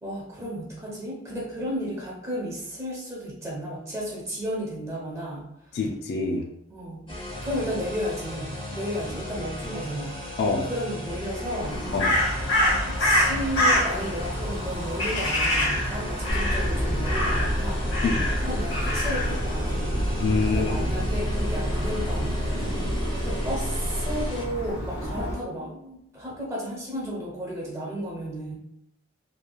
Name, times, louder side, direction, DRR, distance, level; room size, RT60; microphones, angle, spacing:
voice 1, 0.0-5.5 6.7-7.1 7.4-10.2 10.6-11.8 12.9-17.9 18.4-22.4 23.1-28.5, equal, 15° right, -5 dB, 0.8 m, -33 dB
voice 2, 5.7-6.5 10.4-10.7 11.9-12.2 18.0-18.3 20.2-20.9, left 4 dB, 55° left, 1 dB, 0.3 m, -26 dB
sound 1, 7.1-24.4, left 1 dB, 25° left, 0.7 m, -36 dB
Crow, 11.6-25.3, left 1 dB, 70° left, 1.0 m, -27 dB
sound 2, 16.3-24.3, equal, 45° right, 0.6 m, -30 dB
2.9 x 2.4 x 2.2 m, 0.78 s
head